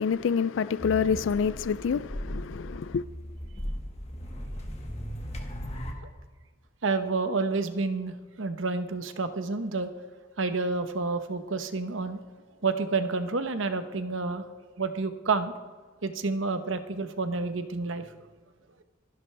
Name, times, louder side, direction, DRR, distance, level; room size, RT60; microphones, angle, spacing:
voice 1, 0.0-3.0, left 6 dB, 80° left, 0.4 m, -27 dB
sound 1, 0.8-5.9, equal, 35° left, 1.7 m, -37 dB
voice 2, 6.8-9.9 10.4-12.2 12.6-14.5 14.8-15.5 16.0-18.1, right 3 dB, 85° right, 1.0 m, -29 dB
27.0 x 11.0 x 3.4 m
head